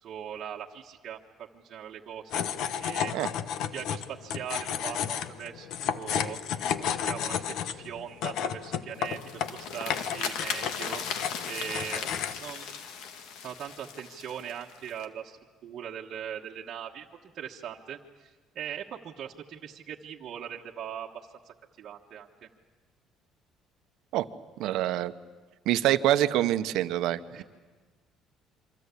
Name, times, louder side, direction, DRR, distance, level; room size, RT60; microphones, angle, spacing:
voice 1, 0.0-3.1 3.7-5.7 5.9-6.4 6.8-11.0 11.5-12.7 13.4-17.1 17.3-21.1 21.4-22.5 27.3-27.4, right 9 dB, 45° right, -2 dB, 1.3 m, -40 dB
sound 1, 2.3-12.4, left 8 dB, 60° left, 1.1 m, -32 dB
sound 2, 9.0-15.1, left 6 dB, 80° left, 2.3 m, -37 dB
voice 2, 24.6-25.1 25.6-27.4, right 13 dB, 70° right, 11 dB, 1.0 m, -26 dB
27.5 x 24.5 x 8.4 m, 1.3 s
cardioid pair, 165°, 0 cm